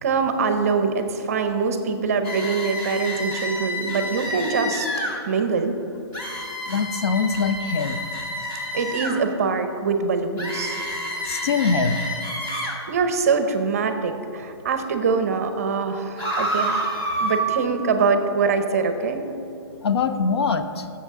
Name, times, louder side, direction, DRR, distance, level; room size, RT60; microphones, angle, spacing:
voice 1, 0.0-4.9 5.3-5.8 8.7-10.8 12.6-16.8 17.2-19.2, right 5 dB, 35° right, 8 dB, 0.6 m, -23 dB
sound 1, 2.2-5.2 6.1-9.2 10.4-12.8 16.2-17.4, equal, 15° left, 0.7 m, -29 dB
voice 2, 6.7-8.0 11.2-12.0 19.8-20.9, left 5 dB, 65° left, 10 dB, 0.7 m, -23 dB
13.5 x 7.3 x 3.6 m, 2.8 s
hypercardioid pair, 180°, 14 cm